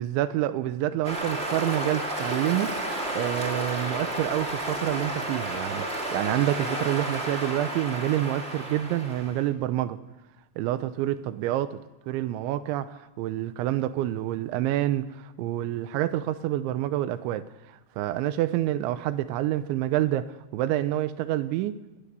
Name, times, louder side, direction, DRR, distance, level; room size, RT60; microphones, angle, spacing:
voice 1, 0.0-2.8 3.1-5.9 6.1-10.0 10.6-11.8 12.1-17.5 18.0-21.8, right 13 dB, 85° right, 13 dB, 3.2 m, -27 dB
sound 1, 1.0-9.4, right 1 dB, 20° right, 1.9 m, -32 dB
20.5 x 19.5 x 6.9 m, 1.1 s
omnidirectional pair, 5.3 m